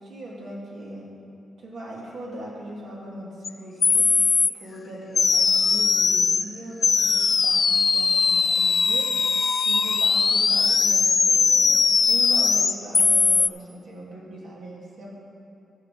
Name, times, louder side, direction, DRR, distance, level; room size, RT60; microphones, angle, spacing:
voice 1, 0.1-1.1 1.6-4.1 4.6-9.1 9.6-11.8 12.1-15.1, right 1 dB, 70° right, -4 dB, 2.8 m, -39 dB
sound 1, 3.4-3.5 3.8-4.5 5.2-6.4 6.8-13.5, left 5 dB, 40° left, 0.4 m, -20 dB
14.0 x 7.1 x 5.0 m, 2.7 s
wide cardioid pair, 145°, 0 cm